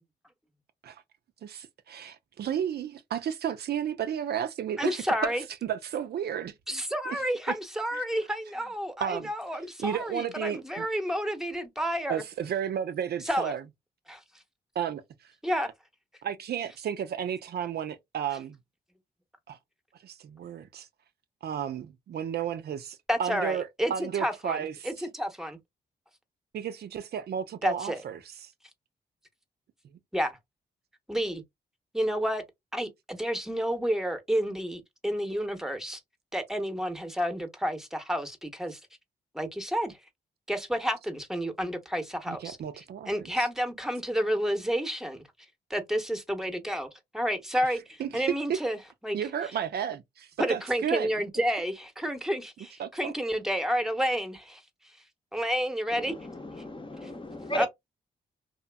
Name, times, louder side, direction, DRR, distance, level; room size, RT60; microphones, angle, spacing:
voice 1, 1.4-5.3 5.6-6.8 7.1-7.2 7.5-7.6 7.9-8.0 9.0-9.3 9.8-10.9 12.1-13.6 14.8-15.0 16.2-18.6 19.5-19.6 20.0-20.9 21.4-24.9 26.5-28.5 42.3-43.1 43.4-43.5 48.0-48.2 48.5-48.6 49.1-51.1 52.8-53.1, right 9 dB, 65° right, 0.4 m, -33 dB
voice 2, 4.8-5.4 6.7-12.2 13.3-13.5 14.1-14.2 15.4-15.7 23.1-25.6 27.6-28.0 30.1-30.4 31.1-31.4 31.9-32.4 32.7-36.0 36.3-38.8 39.3-40.0 40.5-42.6 43.1-45.2 45.7-46.9 47.1-48.8 49.0-49.2 50.4-54.6 55.3-56.1 57.5-57.7, equal, ahead, 0.8 m, -30 dB
voice 3, 55.9-57.7, equal, 30° left, 0.7 m, -35 dB
2.8 x 2.4 x 2.2 m
supercardioid pair, 50°, 18 cm